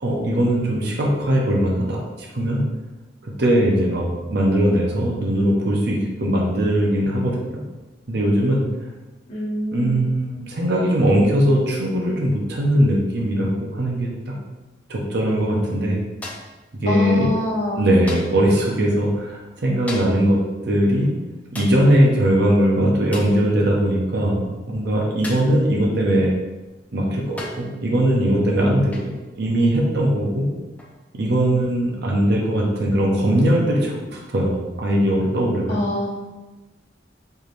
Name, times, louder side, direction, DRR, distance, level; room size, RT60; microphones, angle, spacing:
voice 1, 0.0-2.0 2.3-2.6 3.2-7.6 8.1-8.6 9.7-14.3 14.9-16.0 16.8-17.3 17.8-20.4 20.7-21.2 21.5-26.3 26.9-29.1 29.4-30.5 31.1-35.8, right 1 dB, 60° right, -2 dB, 0.7 m, -20 dB
voice 2, 9.3-10.1 16.9-17.9 35.7-36.1, left 1 dB, 40° left, -7 dB, 1.2 m, -25 dB
sound 1, 16.2-16.6 18.1-18.5 19.9-20.3 21.5-21.9 23.1-23.4 25.2-25.6 26.6-26.7 27.4-27.7 28.9-29.2 30.8-31.0, left 2 dB, 10° left, 0.5 m, -36 dB
4.6 x 3.3 x 2.6 m, 1.1 s
head